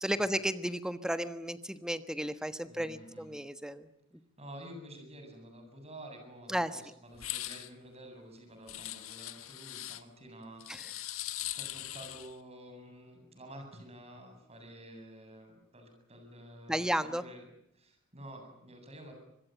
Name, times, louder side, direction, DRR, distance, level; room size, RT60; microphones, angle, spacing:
voice 1, 0.0-3.9 6.5-6.8 10.7-10.9 16.7-17.2, equal, 5° right, 10 dB, 1.3 m, -33 dB
voice 2, 2.7-3.3 4.4-11.0 11.4-17.4 17.7-19.1, right 1 dB, 30° right, 5 dB, 7.9 m, -50 dB
sound 1, 7.1-7.7 8.7-10.0 10.6-12.3, left 14 dB, 80° left, 1.6 m, -40 dB
25.5 x 22.0 x 9.2 m, 0.75 s
head